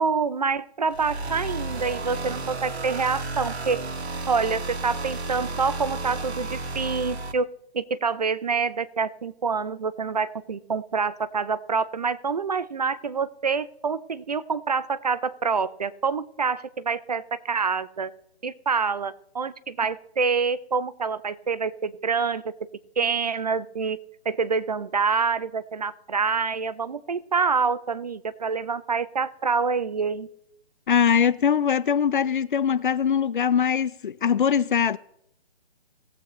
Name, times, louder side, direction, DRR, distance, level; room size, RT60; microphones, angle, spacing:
voice 1, 0.0-3.8 4.3-7.5 7.7-18.1 18.4-22.4 23.0-24.0 24.3-30.3, right 5 dB, 40° right, 0.4 m, -26 dB
sound 1, 0.9-7.3, right 2 dB, 85° right, 1.1 m, -32 dB
voice 2, 30.9-35.0, left 7 dB, 50° left, 0.4 m, -22 dB
18.5 x 7.9 x 3.0 m
hypercardioid pair, 155°, 32 cm